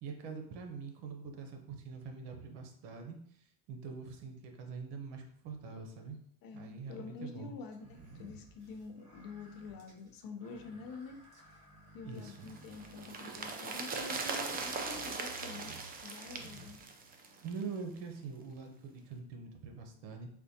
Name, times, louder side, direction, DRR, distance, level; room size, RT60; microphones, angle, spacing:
voice 1, 0.0-6.2 6.5-7.5 12.0-12.5 17.4-20.3, right 5 dB, 75° right, 4 dB, 0.8 m, -44 dB
voice 2, 6.4-11.5 11.9-15.8 16.0-16.8, left 4 dB, 50° left, 5 dB, 0.6 m, -47 dB
sound 1, 7.7-17.4, right 2 dB, 45° right, 1.1 m, -57 dB
sound 2, 12.3-17.7 18.0-18.1, right 4 dB, 25° right, 0.3 m, -40 dB
4.2 x 2.3 x 2.7 m, 0.67 s
supercardioid pair, 105°, 43 cm